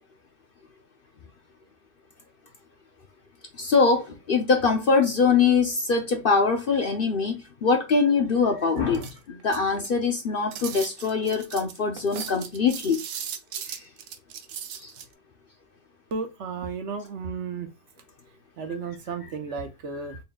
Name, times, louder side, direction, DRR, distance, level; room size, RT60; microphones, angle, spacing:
voice 1, 3.6-13.0 13.7-13.8 14.8-14.9, left 5 dB, 55° left, 0.7 m, -23 dB
sound 1, 8.9-10.0 10.5-15.0, right 8 dB, 80° right, 1.1 m, -37 dB
voice 2, 16.1-17.7 18.6-20.2, right 5 dB, 60° right, 1.0 m, -33 dB
4.1 x 3.7 x 2.2 m
omnidirectional pair, 1.4 m